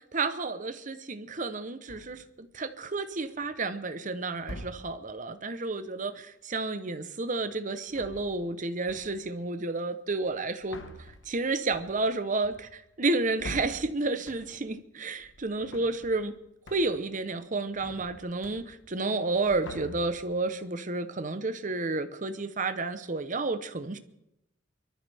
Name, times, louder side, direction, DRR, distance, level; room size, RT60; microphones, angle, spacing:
voice 1, 0.1-10.8 11.3-16.3 16.7-24.0, right 3 dB, 40° right, 10 dB, 0.9 m, -31 dB
sound 1, 1.9-2.3 3.1-3.7 4.4-5.2 7.7-8.6 8.9-9.4 10.2-14.8 15.1-16.4 16.6-17.1 17.4-19.0 19.3-20.4, left 1 dB, 75° left, 1.5 m, -46 dB
24.0 x 13.5 x 3.5 m, 0.83 s
head